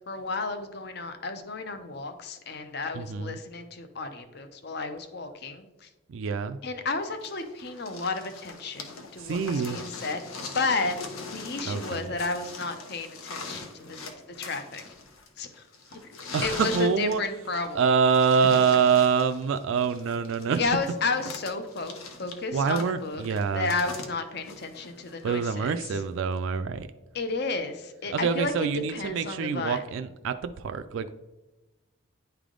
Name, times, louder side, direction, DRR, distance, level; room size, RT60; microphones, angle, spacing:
voice 1, 0.1-5.9 6.6-10.2 10.5-11.0 11.3-14.0 14.4-14.8 15.4-15.7 15.9-17.9 20.5-23.2 23.5-25.8 27.1-28.5 28.9-29.8, left 3 dB, 50° left, 8 dB, 0.6 m, -32 dB
voice 2, 2.9-3.4 6.1-6.6 9.2-9.8 11.7-12.1 16.3-17.2 17.7-20.6 22.5-23.7 25.2-26.9 28.1-31.1, right 6 dB, 70° right, 9 dB, 0.3 m, -25 dB
sound 1, 7.2-25.3 26.4-26.5, left 3 dB, 90° left, 0.9 m, -41 dB
10.0 x 3.4 x 3.7 m, 1.1 s
head